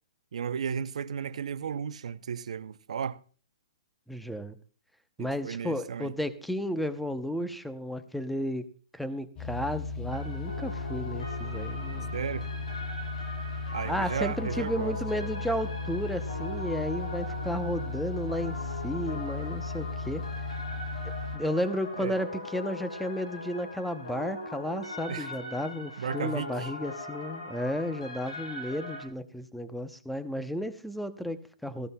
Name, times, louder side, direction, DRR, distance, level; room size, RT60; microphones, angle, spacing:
voice 1, 0.3-3.2 5.2-6.1 12.1-12.5 13.7-14.9 22.0-22.2 25.1-25.3 26.0-26.7, right 7 dB, 70° right, 0.5 m, -34 dB
voice 2, 4.1-4.6 5.2-8.6 8.9-12.1 13.8-20.2 21.3-31.9, equal, ahead, 0.7 m, -33 dB
sound 1, 9.4-21.4, left 3 dB, 20° left, 1.2 m, -36 dB
sound 2, 10.1-29.0, left 2 dB, 90° left, 6.5 m, -41 dB
18.0 x 14.0 x 2.2 m
hypercardioid pair, 145°, 4 cm